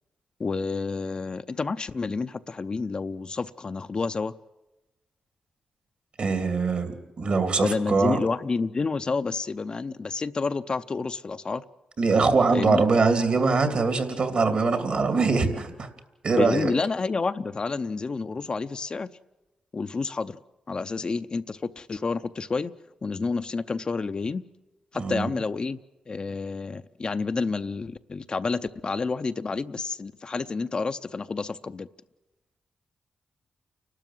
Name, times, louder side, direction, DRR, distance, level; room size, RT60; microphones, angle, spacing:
voice 1, 0.4-4.3 7.6-11.6 12.5-12.8 16.4-19.1 19.7-20.4 20.7-22.7 23.0-24.4 25.1-25.8 26.1-31.9, left 4 dB, 40° left, 0.6 m, -29 dB
voice 2, 6.2-6.9 7.2-8.2 12.0-15.9 16.2-16.7 24.9-25.4, right 4 dB, 60° right, 2.8 m, -23 dB
29.5 x 12.5 x 7.8 m
cardioid pair, 70°, 2 cm